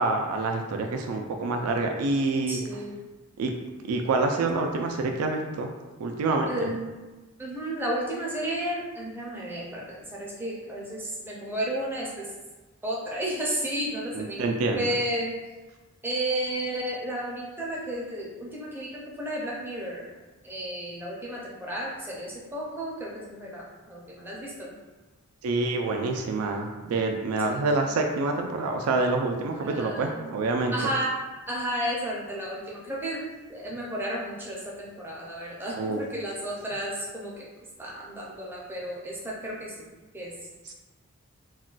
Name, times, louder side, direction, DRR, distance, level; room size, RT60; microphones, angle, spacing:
voice 1, 0.0-2.8 3.4-3.5 3.8-5.7 6.0-6.7 14.1-14.9 25.4-30.7 35.8-36.0 40.7-40.8, right 3 dB, 80° right, 3 dB, 0.3 m, -27 dB
voice 2, 2.4-3.0 6.5-7.0 7.4-12.3 12.8-14.5 14.7-15.4 16.0-20.0 20.4-24.7 27.5-27.9 29.6-30.3 30.7-31.2 31.5-33.2 33.5-37.5 37.8-39.8 40.1-40.3, right 1 dB, 10° right, -4 dB, 0.5 m, -32 dB
2.3 x 2.2 x 3.8 m, 1.2 s
head